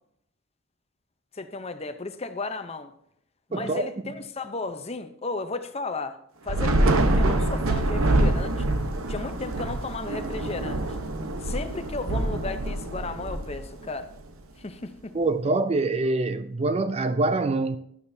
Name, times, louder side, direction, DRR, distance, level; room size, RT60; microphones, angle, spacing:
voice 1, 1.3-2.9 3.5-6.2 6.4-8.7 9.1-10.8 11.4-14.1 14.6-15.1, left 3 dB, 30° left, 0.7 m, -34 dB
voice 2, 3.5-3.9 15.1-17.8, right 2 dB, 30° right, 0.4 m, -25 dB
Thunder / Rain, 6.5-14.0, right 1 dB, 80° right, 1.0 m, -25 dB
12.0 x 12.0 x 2.7 m
head